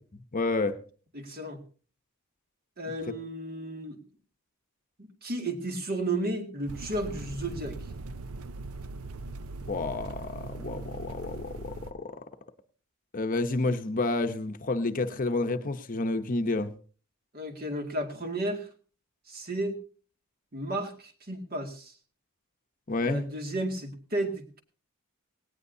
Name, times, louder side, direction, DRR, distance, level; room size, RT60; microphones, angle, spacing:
voice 1, 0.3-0.8 9.7-12.3 13.1-16.7 22.9-23.2, left 2 dB, 40° left, 0.8 m, -30 dB
voice 2, 1.1-1.6 2.8-4.0 5.0-7.8 17.3-18.7 19.3-19.8 20.5-21.9 23.0-24.6, right 1 dB, 45° right, 2.2 m, -33 dB
sound 1, 6.7-11.9, right 2 dB, 85° right, 0.7 m, -40 dB
18.0 x 17.5 x 2.7 m
head